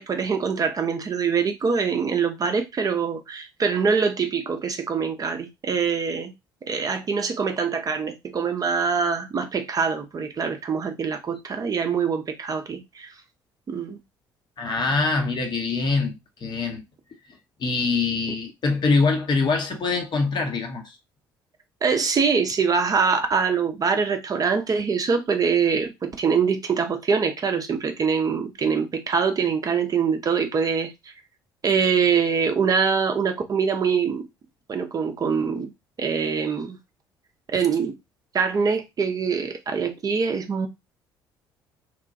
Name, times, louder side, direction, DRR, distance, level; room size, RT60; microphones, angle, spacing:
voice 1, 0.0-6.3 6.6-13.2 13.7-14.0 21.8-31.1 31.6-34.3 34.7-35.7 36.0-36.8 37.5-37.9 38.3-40.7, right 6 dB, 30° right, 0.5 m, -24 dB
voice 2, 14.6-16.8 17.3-21.0, left 4 dB, 40° left, 0.7 m, -24 dB
3.0 x 2.2 x 2.5 m
figure-of-eight pair, 50°, 12 cm